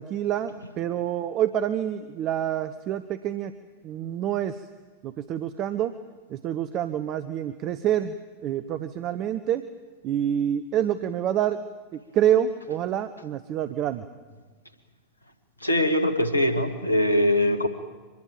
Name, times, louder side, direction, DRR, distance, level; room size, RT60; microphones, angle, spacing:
voice 1, 0.0-3.5 3.8-4.6 5.0-5.9 6.3-8.1 8.4-9.7 10.0-11.6 11.9-14.0, right 10 dB, 35° right, 12 dB, 1.0 m, -27 dB
voice 2, 15.6-17.7, left 1 dB, 85° left, 9 dB, 2.1 m, -22 dB
25.0 x 20.5 x 8.7 m, 1.4 s
figure-of-eight pair, 90°, 0 cm